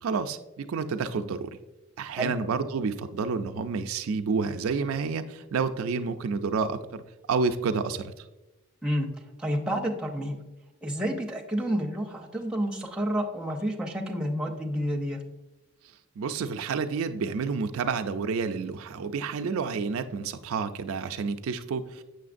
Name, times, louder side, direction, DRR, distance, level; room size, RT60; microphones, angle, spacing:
voice 1, 0.0-1.5 2.0-7.0 7.3-8.1 16.2-22.0, right 5 dB, 75° right, 8 dB, 0.4 m, -29 dB
voice 2, 9.4-10.4 10.8-15.2, equal, 5° right, 0 dB, 0.6 m, -29 dB
7.0 x 6.3 x 2.5 m, 1.0 s
head